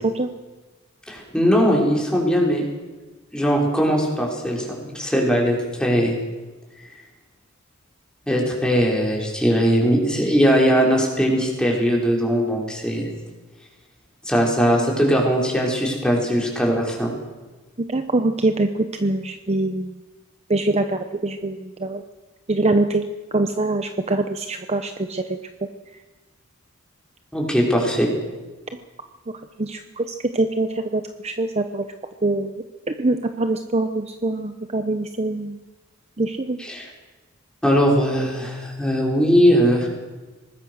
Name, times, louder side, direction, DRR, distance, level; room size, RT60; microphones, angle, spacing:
voice 1, 0.0-0.3 17.9-20.0 20.5-22.0 22.5-23.0 23.3-25.4 29.6-31.9 32.2-32.5 32.9-35.6 36.2-36.6, right 2 dB, 30° right, 7 dB, 0.9 m, -24 dB
voice 2, 1.1-2.6 3.3-6.2 8.3-13.1 14.3-17.1 27.3-28.1 36.6-36.9 37.6-39.9, equal, 5° left, -2 dB, 5.4 m, -20 dB
24.0 x 20.0 x 6.5 m, 1.2 s
head